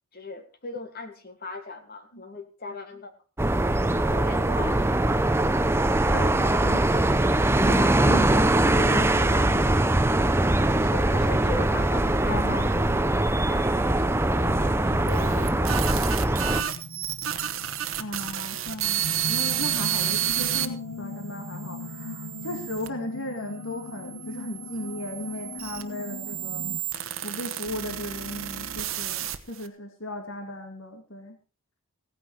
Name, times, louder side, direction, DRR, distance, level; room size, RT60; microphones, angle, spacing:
voice 1, 0.1-3.1 4.1-5.7 6.0-6.8 10.6-12.7 13.4-13.7 13.9-16.0, left 3 dB, 45° left, 7 dB, 1.7 m, -40 dB
sound 1, 3.4-16.6, right 1 dB, 10° right, 0.6 m, -22 dB
voice 2, 6.1-7.1 7.6-9.8 12.3-13.2 18.0-26.6 27.2-31.4, left 1 dB, 60° left, 4 dB, 2.2 m, -36 dB
sound 2, 11.1-26.8, left 3 dB, 90° left, 1.0 m, -40 dB
sound 3, 15.1-20.7 21.3-22.9 23.7-29.7, right 11 dB, 65° right, 1.1 m, -31 dB
16.5 x 9.4 x 4.6 m, 0.34 s
head